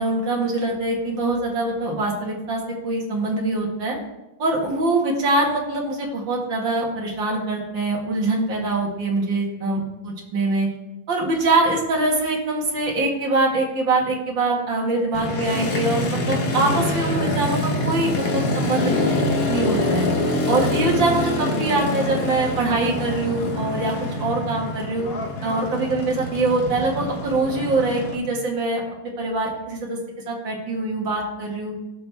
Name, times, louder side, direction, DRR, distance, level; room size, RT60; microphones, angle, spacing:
voice 1, 0.0-4.0 4.4-10.7 11.1-19.1 19.5-20.1 20.5-23.9 24.2-25.1 25.4-28.8 29.2-30.0 30.3-31.7, right 2 dB, 80° right, -1 dB, 2.6 m, -23 dB
Motorcycle, 15.1-28.2, left 2 dB, 50° left, 1.5 m, -25 dB
17.0 x 6.2 x 3.5 m, 0.97 s
omnidirectional pair, 2.0 m